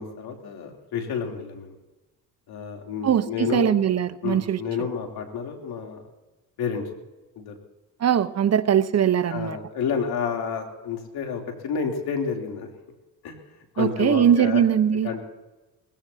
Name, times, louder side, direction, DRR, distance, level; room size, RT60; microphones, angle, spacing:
voice 1, 0.0-1.7 2.5-3.7 4.2-6.0 6.6-6.9 7.3-7.5 9.3-12.7 13.2-13.3 13.7-14.6 14.9-15.2, left 6 dB, 70° left, 2 dB, 3.3 m, -30 dB
voice 2, 3.0-4.6 8.0-9.6 13.8-15.1, right 9 dB, 40° right, 11 dB, 1.0 m, -21 dB
20.5 x 16.0 x 2.8 m, 1.1 s
cardioid pair, 90°, 39 cm